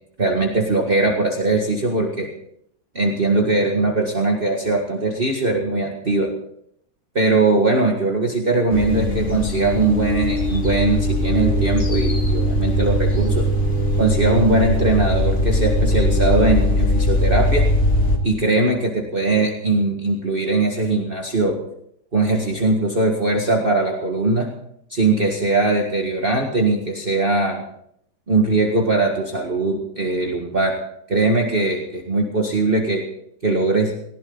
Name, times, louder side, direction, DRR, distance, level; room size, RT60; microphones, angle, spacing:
voice 1, 0.2-2.3 3.0-6.3 7.2-13.5 14.0-17.6 18.2-21.6 22.1-24.5 24.9-27.6 28.3-30.8 31.1-33.0 33.4-33.9, right 2 dB, 30° right, 0 dB, 2.0 m, -20 dB
sound 1, 8.7-18.2, left 1 dB, 45° left, 2.4 m, -20 dB
19.0 x 16.0 x 4.0 m, 0.71 s
omnidirectional pair, 1.9 m